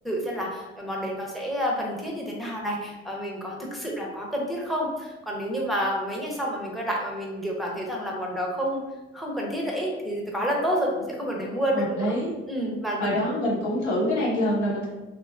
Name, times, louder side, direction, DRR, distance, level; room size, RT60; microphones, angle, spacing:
voice 1, 0.0-8.8 9.1-12.1 12.5-13.4, equal, ahead, -2 dB, 0.7 m, -29 dB
voice 2, 11.7-12.3 13.0-14.9, equal, 65° left, -5 dB, 1.0 m, -25 dB
2.8 x 2.2 x 2.4 m, 1.1 s
hypercardioid pair, 45°, 32 cm